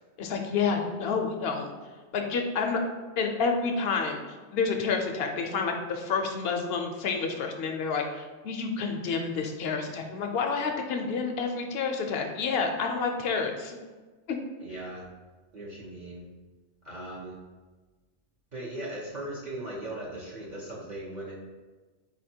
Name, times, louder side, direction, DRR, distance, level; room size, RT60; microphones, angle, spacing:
voice 1, 0.2-1.7 2.1-2.8 3.2-4.2 4.5-13.8 14.3-14.4, left 5 dB, 60° left, 3 dB, 0.7 m, -29 dB
voice 2, 14.6-15.1 15.5-16.3 16.8-17.4 18.5-21.3, right 1 dB, 45° right, -5 dB, 0.7 m, -38 dB
4.2 x 2.8 x 4.3 m, 1.3 s
omnidirectional pair, 1.3 m